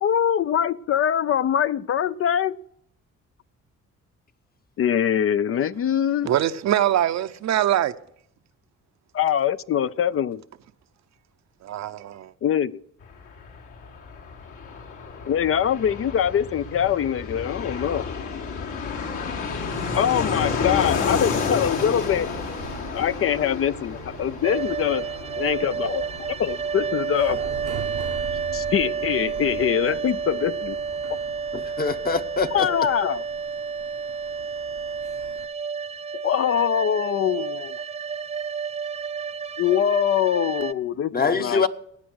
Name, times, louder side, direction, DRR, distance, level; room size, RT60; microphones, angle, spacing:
voice 1, 0.0-2.6 4.8-6.3 9.1-10.4 12.4-12.8 15.3-18.1 20.0-22.3 22.9-25.1 25.4-26.0 26.4-27.4 28.5-30.8 32.5-33.2 36.2-37.7 39.6-41.6, left 9 dB, 50° left, 0.4 m, -23 dB
voice 2, 6.2-7.9 11.6-12.3, right 11 dB, 65° right, 0.7 m, -23 dB
Fixed-wing aircraft airplane, 13.0-31.4 31.6-31.7 31.9-32.7, left 5 dB, 80° left, 3.5 m, -31 dB
sound 1, 21.9-35.5, right 10 dB, 90° right, 1.1 m, -42 dB
sound 2, 24.4-40.7, right 6 dB, 20° right, 0.5 m, -30 dB
voice 3, 31.5-32.7 41.1-41.7, left 5 dB, 30° left, 0.9 m, -24 dB
16.5 x 9.3 x 6.3 m
cardioid pair, 90°, 30 cm